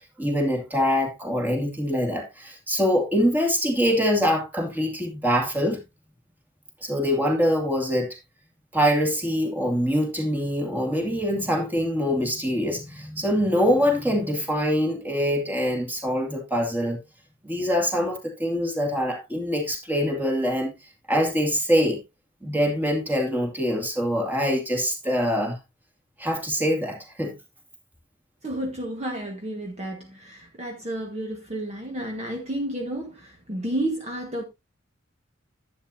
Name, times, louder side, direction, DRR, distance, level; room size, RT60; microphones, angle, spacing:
voice 1, 0.2-5.8 6.8-8.1 8.7-17.0 17.4-20.7 21.1-22.0 22.4-25.6 26.2-27.3, equal, 10° right, 2.4 m, -24 dB
voice 2, 28.4-34.4, right 1 dB, 30° right, 1.5 m, -31 dB
11.0 x 8.4 x 2.7 m
head